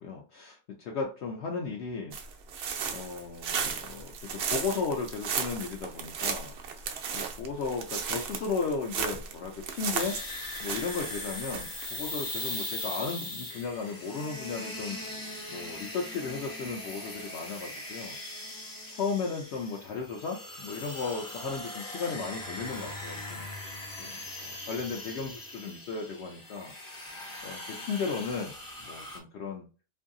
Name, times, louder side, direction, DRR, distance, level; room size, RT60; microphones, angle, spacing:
voice 1, 0.0-2.2 2.9-10.2 10.6-15.0 15.5-18.2 18.9-23.4 24.0-27.1 27.4-28.5 28.8-29.6, left 5 dB, 65° left, 0 dB, 0.8 m, -35 dB
sound 1, 2.1-11.9, right 6 dB, 65° right, 0.7 m, -35 dB
sound 2, 9.9-29.2, left 1 dB, 25° left, 0.5 m, -40 dB
2.6 x 2.6 x 2.5 m, 0.35 s
omnidirectional pair, 1.3 m